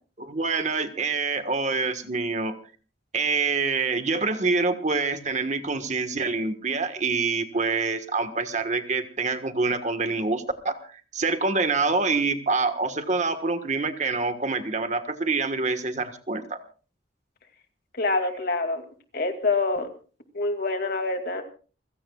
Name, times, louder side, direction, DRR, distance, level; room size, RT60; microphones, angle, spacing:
voice 1, 0.2-2.6 3.1-16.6, right 4 dB, 40° right, 9 dB, 1.5 m, -26 dB
voice 2, 18.0-18.8 19.1-19.9 20.3-21.4, left 3 dB, 55° left, 6 dB, 2.5 m, -26 dB
28.5 x 16.5 x 2.4 m, 0.38 s
head